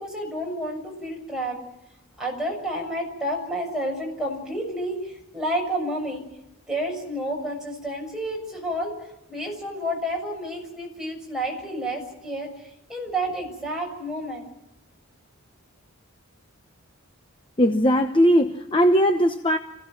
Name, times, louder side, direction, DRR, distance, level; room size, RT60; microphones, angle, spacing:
voice 1, 0.0-1.6 2.2-6.2 6.7-8.9 9.3-14.5, right 1 dB, 5° right, 7.0 m, -30 dB
voice 2, 17.6-19.6, equal, 20° left, 0.9 m, -19 dB
26.0 x 16.5 x 7.6 m
head